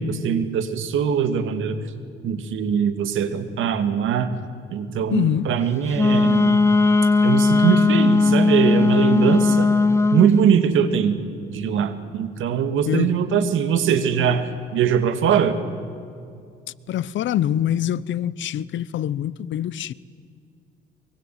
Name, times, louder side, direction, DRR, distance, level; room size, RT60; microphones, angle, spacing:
voice 1, 0.0-1.8 2.2-4.3 4.7-6.6 7.2-9.7 10.1-11.2 11.5-15.6, right 7 dB, 80° right, 2.3 m, -21 dB
voice 2, 5.1-5.5 12.9-13.1 16.9-19.9, left 11 dB, 70° left, 0.8 m, -24 dB
Wind instrument woodwind instrument, 5.9-10.3, left 3 dB, 15° left, 0.9 m, -17 dB
24.0 x 23.0 x 9.3 m
cardioid pair, 90°, 20 cm